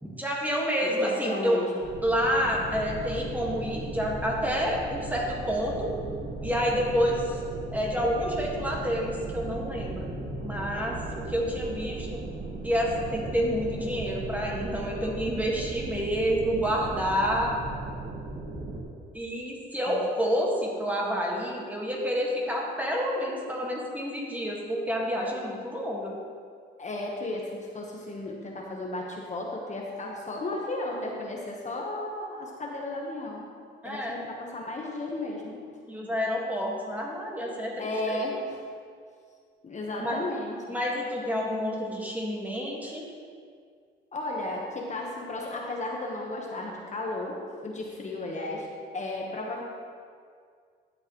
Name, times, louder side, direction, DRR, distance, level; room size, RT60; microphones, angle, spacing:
voice 1, 0.0-1.6 2.0-6.0 6.4-7.4 7.7-10.1 10.4-12.2 12.6-17.6 19.1-26.2 33.8-34.2 35.9-38.2 40.0-40.2 40.7-43.1, equal, 10° right, -3 dB, 1.8 m, -29 dB
voice 2, 0.8-1.9 19.9-20.1 26.8-33.4 33.8-35.5 37.8-38.6 39.6-40.8 44.1-48.7 48.9-49.6, left 2 dB, 35° left, -1 dB, 1.3 m, -34 dB
sound 1, 1.8-18.8, right 2 dB, 70° right, 1.6 m, -37 dB
12.0 x 7.7 x 3.2 m, 2.1 s
cardioid pair, 90°, 20 cm